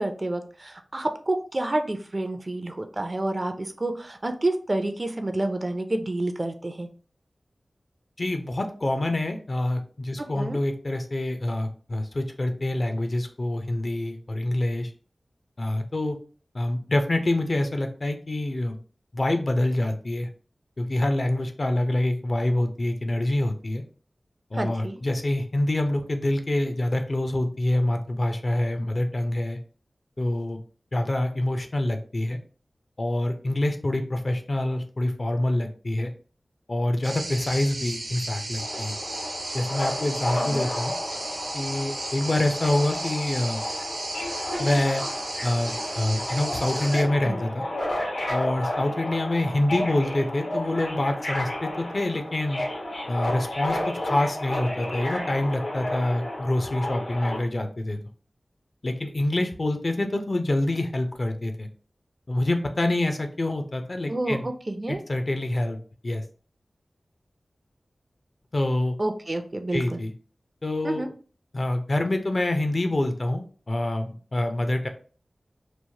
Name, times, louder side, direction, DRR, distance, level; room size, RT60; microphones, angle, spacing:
voice 1, 0.0-6.9 10.4-10.6 24.5-25.0 40.5-40.7 47.2-47.4 64.1-65.0 69.0-70.0 70.8-71.1, right 2 dB, 40° right, 6 dB, 0.4 m, -29 dB
voice 2, 8.2-14.9 15.6-16.2 16.5-18.8 19.1-20.3 20.8-23.8 24.5-29.6 30.2-30.6 30.9-32.4 33.0-36.1 36.7-38.9 39.5-40.9 41.5-43.6 44.6-45.0 45.4-47.6 48.3-52.6 53.1-58.0 58.8-61.7 62.3-64.5 65.1-65.8 66.0-66.2 68.5-69.0 69.7-70.1 70.6-71.0 71.5-74.9, left 1 dB, 50° left, 6 dB, 0.5 m, -26 dB
sound 1, 37.0-47.0, right 2 dB, 80° right, 0.7 m, -34 dB
Subway metro underground, 38.6-57.4, left 1 dB, 85° left, 1.0 m, -32 dB
3.0 x 2.0 x 2.7 m, 0.40 s
wide cardioid pair, 65°, 0 cm